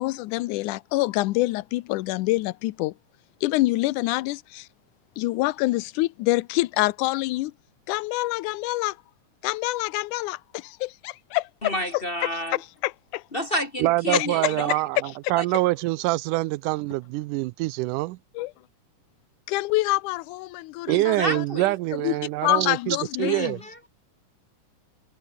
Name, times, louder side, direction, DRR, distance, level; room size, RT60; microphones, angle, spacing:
voice 1, 0.0-2.9 3.4-4.7 5.2-7.5 7.9-9.0 9.4-11.7 12.8-13.2 14.1-14.8 18.4-18.5 19.5-21.5 22.0-22.1 22.4-23.6, left 19 dB, 80° left, 2.1 m, -26 dB
voice 2, 11.6-12.6 13.3-14.7 15.3-15.4 20.9-21.7 23.2-23.7, equal, 25° left, 1.4 m, -30 dB
voice 3, 13.8-18.2 20.9-23.6, right 19 dB, 85° right, 2.1 m, -25 dB
omnidirectional pair, 3.6 m